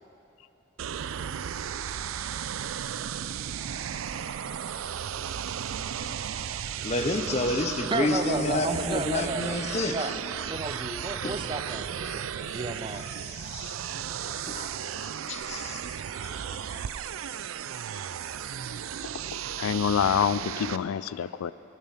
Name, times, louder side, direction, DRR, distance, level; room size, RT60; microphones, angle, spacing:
sound 1, 0.8-20.8, right 8 dB, 80° right, 0.4 m, -35 dB
voice 1, 6.7-10.1 11.2-11.3 12.0-12.2 13.1-13.8 14.2-16.0 16.2-16.8, left 2 dB, 30° left, 7 dB, 0.6 m, -31 dB
voice 2, 7.9-9.6 9.9-10.2 10.5-13.1, right 2 dB, 25° right, 8 dB, 0.5 m, -33 dB
voice 3, 19.6-21.5, left 8 dB, 90° left, 17 dB, 0.3 m, -26 dB
19.0 x 7.3 x 5.7 m, 2.9 s
head